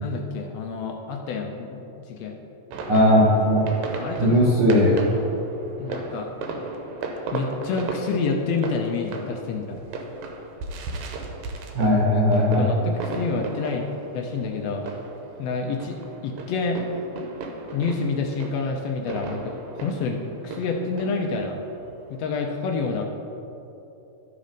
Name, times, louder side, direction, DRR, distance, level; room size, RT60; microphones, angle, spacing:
voice 1, 0.0-2.3 4.0-4.4 5.8-6.3 7.3-9.8 12.6-13.8 14.1-14.9 15.4-16.8 17.7-21.6 22.1-23.0, left 4 dB, 75° left, 2 dB, 1.6 m, -28 dB
sound 1, 2.7-22.2, right 3 dB, 80° right, 2.1 m, -36 dB
voice 2, 2.9-3.6 4.2-5.0 11.7-12.7, equal, 60° right, -6 dB, 1.2 m, -18 dB
12.0 x 4.2 x 5.1 m, 3.0 s
omnidirectional pair, 3.3 m